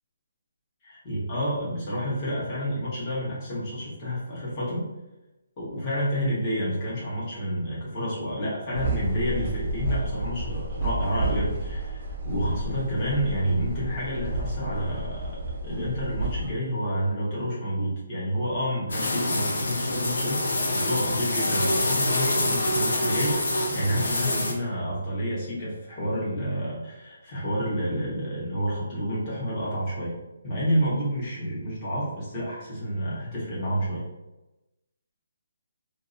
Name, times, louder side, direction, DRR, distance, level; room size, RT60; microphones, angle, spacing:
voice 1, 0.8-4.8 5.6-30.1 30.4-34.0, equal, 30° left, -8 dB, 1.2 m, -29 dB
sound 1, 8.7-16.5, right 2 dB, 40° right, 0.5 m, -31 dB
sound 2, 18.9-24.5, left 1 dB, 75° left, 0.5 m, -26 dB
2.6 x 2.0 x 2.6 m, 0.99 s
hypercardioid pair, 155°, 0 cm